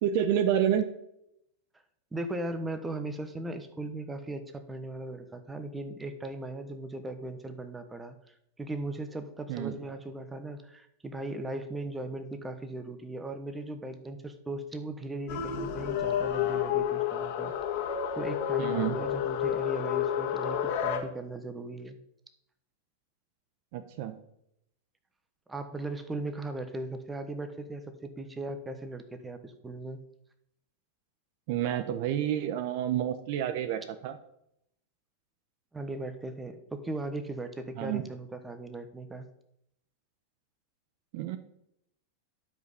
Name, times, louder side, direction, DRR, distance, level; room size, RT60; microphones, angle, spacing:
voice 1, 0.0-0.9 9.5-9.8 18.6-19.0 23.7-24.2 31.5-34.2 37.8-38.0 41.1-41.4, right 10 dB, 60° right, 11 dB, 0.9 m, -29 dB
voice 2, 2.1-17.5 18.2-22.0 25.5-30.0 35.7-39.3, right 2 dB, 15° right, 9 dB, 1.2 m, -38 dB
sound 1, 15.3-21.0, left 9 dB, 55° left, 1.7 m, -30 dB
12.0 x 5.3 x 5.5 m, 0.77 s
hypercardioid pair, 110°, 0 cm